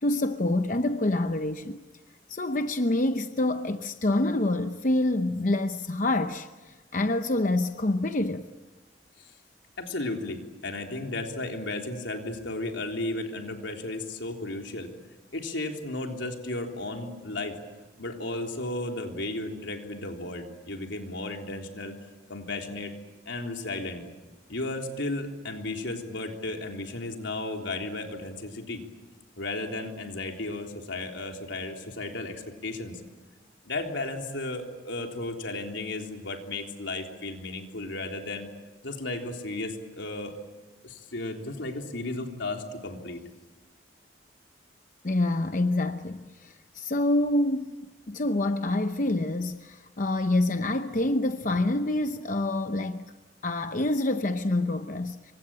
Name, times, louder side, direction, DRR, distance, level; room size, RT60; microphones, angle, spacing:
voice 1, 0.0-1.8 2.3-8.5 45.0-47.7 48.1-53.0 53.4-55.3, left 2 dB, 45° left, 0.8 m, -27 dB
voice 2, 9.8-14.9 15.3-17.6 18.0-22.0 22.3-22.9 23.3-24.0 24.5-28.8 29.4-33.0 33.6-38.5 38.8-40.4 40.8-43.2, left 2 dB, 80° left, 3.6 m, -34 dB
27.0 x 24.5 x 8.8 m
head